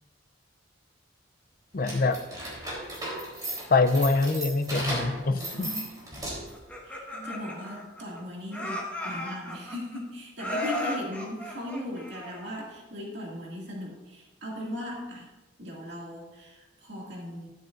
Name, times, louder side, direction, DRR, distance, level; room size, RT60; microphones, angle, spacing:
voice 1, 1.7-2.2 3.7-5.7, left 3 dB, 50° left, 8 dB, 0.6 m, -24 dB
sound 1, 1.8-6.6, right 1 dB, 20° right, 3.7 m, -35 dB
voice 2, 5.5-6.2 6.8-15.3 15.6-17.5, left 1 dB, 65° right, -3 dB, 2.3 m, -38 dB
Laughter, 6.5-8.2 8.5-10.0 10.4-12.6, left 1 dB, 10° left, 1.4 m, -35 dB
13.0 x 10.0 x 2.6 m, 1.1 s
head